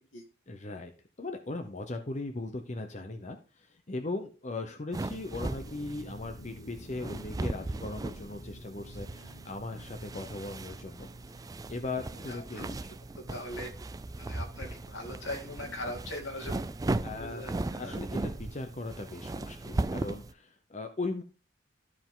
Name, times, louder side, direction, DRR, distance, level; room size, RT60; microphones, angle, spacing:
voice 1, 0.5-0.9 1.2-11.4 11.7-12.8 17.0-17.4 17.8-21.2, left 2 dB, 35° left, 5 dB, 0.8 m, -38 dB
sound 1, 4.9-20.3, right 2 dB, 20° right, 0.3 m, -37 dB
sound 2, 5.5-14.9 15.2-15.3 15.6-15.9, left 1 dB, 60° left, 1.1 m, -52 dB
voice 2, 12.3-13.7 14.1-16.7 17.1-18.0, left 1 dB, 85° left, 2 dB, 2.4 m, -41 dB
13.0 x 4.8 x 3.8 m, 0.34 s
head